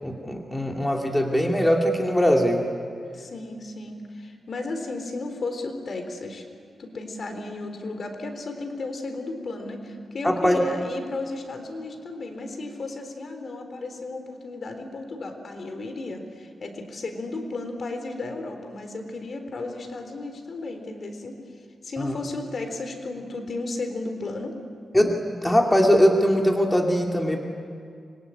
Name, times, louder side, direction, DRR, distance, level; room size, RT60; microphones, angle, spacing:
voice 1, 0.0-2.6 10.2-10.6 22.0-22.2 24.9-25.1 25.4-27.4, equal, 10° left, 1 dB, 2.6 m, -21 dB
voice 2, 3.1-6.4 6.8-21.4 21.8-24.6, left 2 dB, 50° left, 5 dB, 3.7 m, -34 dB
26.0 x 23.0 x 9.8 m, 2.3 s
wide cardioid pair, 120°, 0 cm